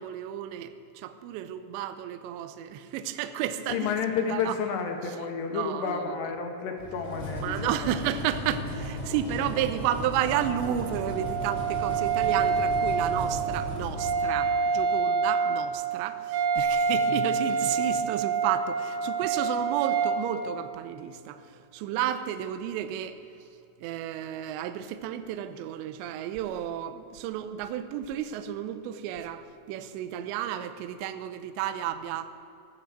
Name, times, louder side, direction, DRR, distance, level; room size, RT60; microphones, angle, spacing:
voice 1, 0.0-3.9 4.3-4.5 5.5-6.1 7.4-23.2 23.8-32.3, right 10 dB, 85° right, 10 dB, 2.6 m, -32 dB
voice 2, 3.7-8.1 9.2-9.8 16.8-17.0, left 6 dB, 75° left, 4 dB, 2.7 m, -32 dB
sound 1, 6.8-14.7, left 1 dB, 20° left, 2.5 m, -36 dB
Wind instrument woodwind instrument, 10.2-20.2, right 5 dB, 55° right, 3.1 m, -27 dB
17.5 x 9.1 x 7.5 m, 2.7 s
omnidirectional pair, 5.7 m